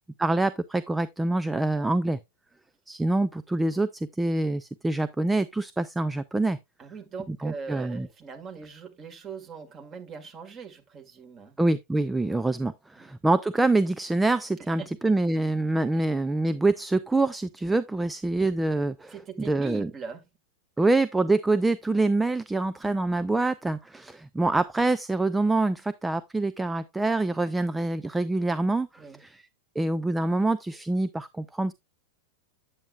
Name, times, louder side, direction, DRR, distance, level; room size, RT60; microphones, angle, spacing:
voice 1, 0.2-2.2 2.9-6.6 7.3-8.1 11.6-19.9 20.8-29.5 29.8-31.7, right 2 dB, 5° right, 0.4 m, -25 dB
voice 2, 6.8-11.6 13.0-13.1 14.8-14.9 15.9-16.0 19.1-20.2 20.8-20.9 29.0-29.2, right 5 dB, 25° right, 1.9 m, -41 dB
8.6 x 8.0 x 2.4 m
figure-of-eight pair, 90°, 0 cm